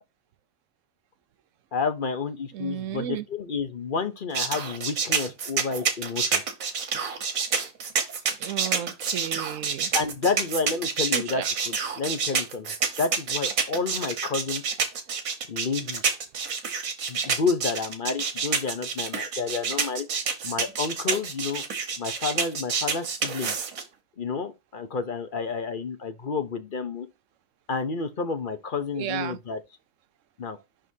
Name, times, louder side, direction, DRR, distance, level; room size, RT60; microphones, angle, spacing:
voice 1, 1.7-6.4 9.9-14.6 15.5-16.1 17.1-20.1 20.4-21.6 22.0-23.5 24.2-27.1 27.7-29.6 30.4-30.6, left 4 dB, 45° left, 0.9 m, -30 dB
voice 2, 2.5-3.2 8.4-9.9 11.1-11.5 29.0-29.4, right 11 dB, 70° right, 1.0 m, -33 dB
sound 1, 4.3-23.8, right 5 dB, 85° right, 1.6 m, -28 dB
11.0 x 3.7 x 2.8 m
omnidirectional pair, 1.4 m